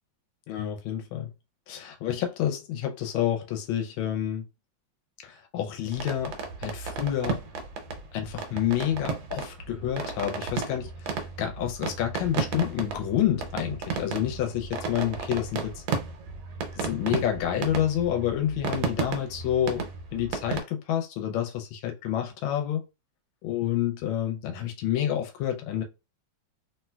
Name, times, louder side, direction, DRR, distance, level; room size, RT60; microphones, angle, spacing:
voice 1, 0.5-1.3 1.7-4.5 5.2-7.4 8.1-15.8 16.8-19.8 20.1-22.8 23.4-25.8, left 10 dB, 90° left, 1.4 m, -29 dB
sound 1, 5.9-20.6, right 5 dB, 80° right, 1.4 m, -34 dB
3.2 x 2.7 x 2.2 m
omnidirectional pair, 2.1 m